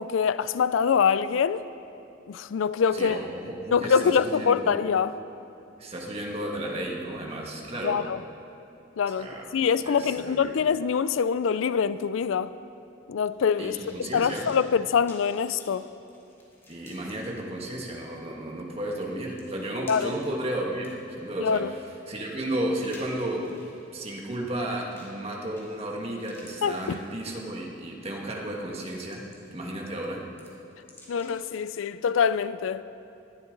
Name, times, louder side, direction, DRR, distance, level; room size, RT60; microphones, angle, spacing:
voice 1, 0.0-1.6 2.3-3.2 3.7-5.1 7.8-8.2 9.0-12.5 13.1-15.9 19.9-20.1 21.4-21.7 26.6-27.0 31.1-32.8, left 6 dB, 80° left, 0.4 m, -24 dB
voice 2, 2.9-4.7 5.8-8.1 9.1-10.6 13.6-14.5 16.7-23.5 23.9-30.3, right 1 dB, 30° right, 1.8 m, -33 dB
sound 1, 13.2-17.1 17.7-17.8 19.0-19.1 19.4-20.3 20.7-23.8 24.9-25.2 25.6-26.0 26.2-27.6 28.1-28.3 28.8-29.7 30.0-31.5 31.9-32.0, left 1 dB, 15° left, 2.5 m, -53 dB
20.0 x 12.5 x 3.9 m
head